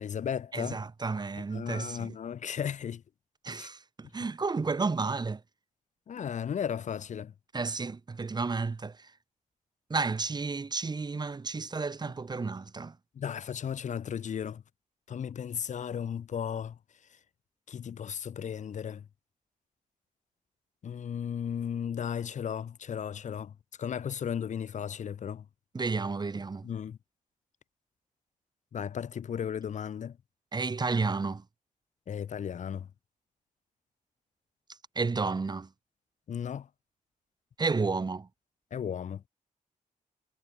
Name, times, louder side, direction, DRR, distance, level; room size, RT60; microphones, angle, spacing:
voice 1, 0.0-0.8 1.5-3.0 3.6-3.7 6.1-7.3 13.2-14.6 15.1-16.8 17.7-19.0 20.8-23.5 23.8-25.4 26.6-27.0 28.7-30.2 32.1-32.9 36.3-36.7 38.7-39.2, left 8 dB, 65° left, 1.3 m, -35 dB
voice 2, 0.5-2.2 3.4-5.4 7.5-9.1 9.9-13.0 25.7-26.7 30.5-31.4 34.9-35.7 37.6-38.3, right 4 dB, 30° right, 2.8 m, -32 dB
wide cardioid pair, 115°, 14 cm